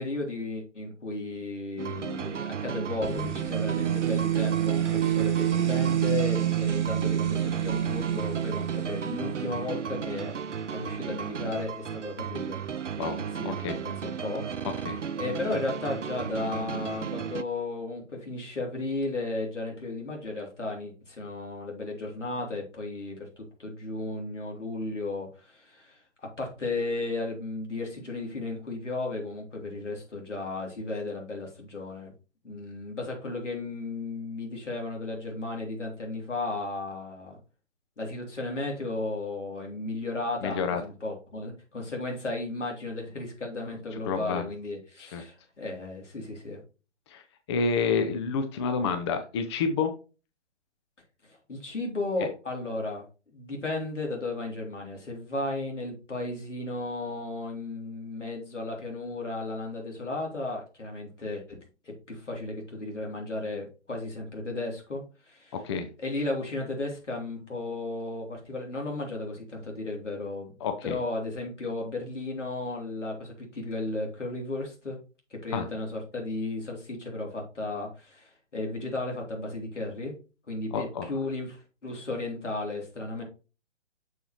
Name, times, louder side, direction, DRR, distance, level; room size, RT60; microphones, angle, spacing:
voice 1, 0.0-10.4 10.7-12.6 13.2-14.7 15.1-32.1 32.4-37.4 38.0-46.6 51.2-53.1 53.3-61.6 61.8-65.5 66.0-70.5 70.8-75.0 75.3-80.1 80.5-83.2, left 2 dB, 80° left, 0 dB, 3.1 m, -34 dB
sound 1, 1.8-17.4, right 7 dB, 85° right, 0.6 m, -34 dB
sound 2, 3.0-9.7, right 11 dB, 40° right, 1.7 m, -28 dB
voice 2, 13.4-13.8 14.8-15.0 40.4-40.8 44.1-44.4 45.0-45.2 47.1-47.2 47.5-49.9 52.2-52.3 65.6-65.9 70.6-71.0 75.5-75.7 80.7-81.1, left 5 dB, 25° left, 8 dB, 0.6 m, -28 dB
6.8 x 6.6 x 3.0 m, 0.33 s
figure-of-eight pair, 130°, 36 cm